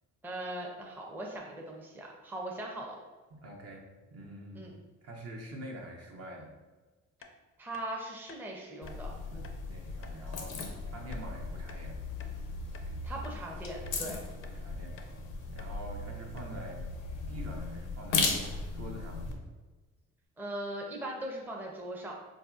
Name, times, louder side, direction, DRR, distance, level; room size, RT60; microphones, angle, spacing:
voice 1, 0.2-3.0 4.5-4.8 7.6-9.5 12.8-14.2 20.4-22.1, right 1 dB, 5° right, -1 dB, 0.5 m, -40 dB
voice 2, 3.3-3.8 4.1-4.7 5.0-6.5 9.6-12.0 14.5-15.0 15.5-16.9 17.3-19.3, right 1 dB, 55° right, 0 dB, 0.7 m, -45 dB
sound 1, 7.2-7.3 7.7-7.9 8.3-8.4 8.9-9.0 9.4-9.6 10.0-10.2 10.6-10.7 11.1-11.3 11.7-12.4 12.7-12.9 13.2-13.4 13.9-14.0 14.4-14.6 15.0-15.1 15.6-15.7 16.0-16.1 16.4-16.6, left 5 dB, 45° left, 0.4 m, -53 dB
sound 2, 8.8-19.3, left 3 dB, 90° left, 0.6 m, -37 dB
4.1 x 2.6 x 2.3 m, 1.3 s
cardioid pair, 90°, 30 cm